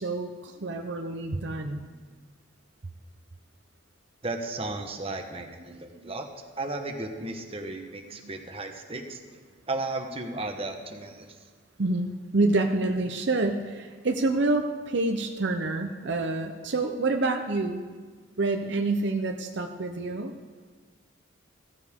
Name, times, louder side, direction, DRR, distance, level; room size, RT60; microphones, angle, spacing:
voice 1, 0.0-1.9 5.7-6.1 8.1-8.3 11.8-17.8 18.4-20.3, right 2 dB, 55° right, 4 dB, 0.7 m, -28 dB
voice 2, 4.2-9.2 9.7-11.4, right 2 dB, 30° right, 4 dB, 1.1 m, -35 dB
15.5 x 14.5 x 3.7 m, 1.5 s
head